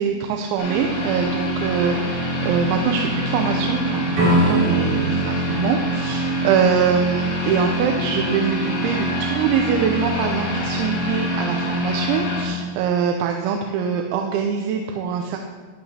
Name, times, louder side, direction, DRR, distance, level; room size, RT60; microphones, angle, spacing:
voice 1, 0.0-15.4, right 6 dB, 80° right, 3 dB, 2.9 m, -23 dB
sound 1, 0.6-12.5, equal, 70° left, 5.5 m, -25 dB
sound 2, 4.2-7.1, equal, 50° right, 4.0 m, -22 dB
14.0 x 11.0 x 2.8 m, 1.5 s
omnidirectional pair, 5.5 m